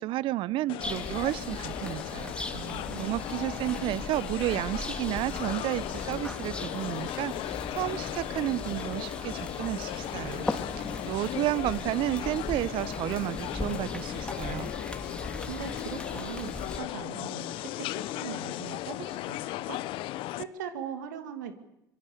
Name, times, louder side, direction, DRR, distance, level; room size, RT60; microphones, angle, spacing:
voice 1, 0.0-2.4 3.0-10.5 10.8-14.7, right 16 dB, 60° right, 20 dB, 0.8 m, -32 dB
sound 1, 0.7-20.4, left 16 dB, 65° left, 0.9 m, -37 dB
sound 2, 0.8-16.8, left 1 dB, 10° left, 3.1 m, -39 dB
voice 2, 2.5-3.2 15.5-19.8 20.3-21.5, right 8 dB, 80° right, 8 dB, 2.3 m, -40 dB
sound 3, 2.9-17.0, left 6 dB, 40° left, 1.6 m, -48 dB
25.0 x 22.0 x 6.9 m, 0.85 s
hypercardioid pair, 65°, 10 cm